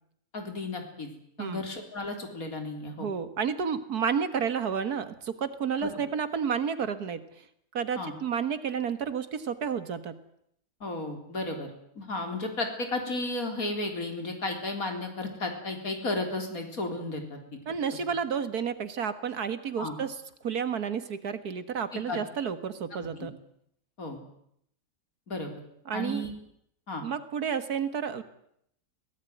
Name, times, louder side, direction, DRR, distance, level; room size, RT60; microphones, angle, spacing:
voice 1, 0.3-1.1 1.4-3.1 5.8-5.9 8.0-8.1 10.8-11.7 12.0-17.4 19.8-19.9 21.9-22.2 22.9-23.3 24.0-24.2 25.3-25.5 25.9-26.3 26.9-27.0, left 2 dB, 65° left, 4 dB, 4.3 m, -33 dB
voice 2, 3.0-7.2 7.7-10.1 17.7-23.3 25.9-26.2 27.0-28.2, right 7 dB, 85° right, 12 dB, 2.1 m, -31 dB
22.5 x 18.0 x 9.3 m, 0.74 s
omnidirectional pair, 1.6 m